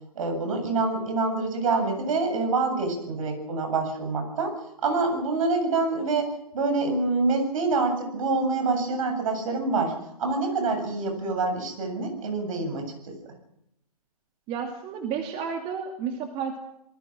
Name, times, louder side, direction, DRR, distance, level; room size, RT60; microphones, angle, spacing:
voice 1, 0.1-4.5 4.8-6.3 6.5-9.9 10.2-13.1, right 3 dB, 60° right, 5 dB, 8.0 m, -26 dB
voice 2, 14.5-16.6, right 6 dB, 30° right, 3 dB, 2.5 m, -31 dB
28.0 x 19.5 x 6.2 m, 0.81 s
hypercardioid pair, 130°, 20 cm